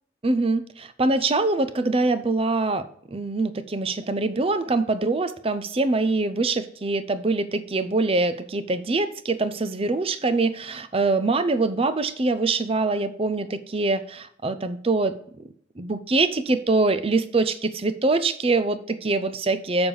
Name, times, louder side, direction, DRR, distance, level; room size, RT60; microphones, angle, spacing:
voice 1, 0.2-2.8 3.1-15.2 15.8-19.9, right 3 dB, 30° right, 12 dB, 0.6 m, -24 dB
7.0 x 6.6 x 5.4 m, 0.65 s
head